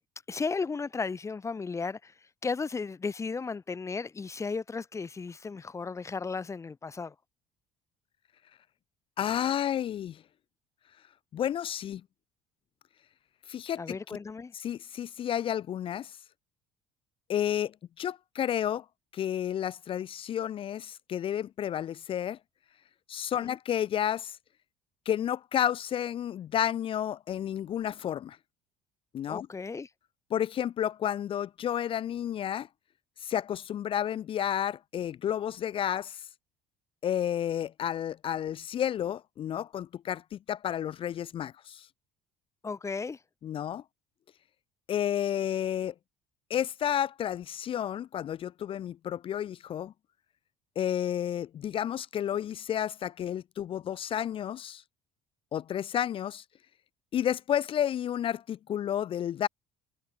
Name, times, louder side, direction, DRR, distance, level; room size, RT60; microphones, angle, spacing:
voice 1, 0.3-2.1 2.4-7.1 13.8-14.5 23.4-23.6 29.3-29.9 42.6-43.2, left 4 dB, 20° left, 1.1 m, -35 dB
voice 2, 9.2-10.2 11.3-12.0 13.5-14.0 14.6-16.2 17.3-18.8 19.1-22.4 23.1-24.4 25.1-28.4 29.1-29.5 30.3-32.7 33.2-36.2 37.0-41.9 43.4-43.8 44.9-45.9 46.5-49.9 50.8-54.8 55.5-56.4 57.1-59.5, left 10 dB, 40° left, 0.5 m, -31 dB
cardioid pair, 105°, 14 cm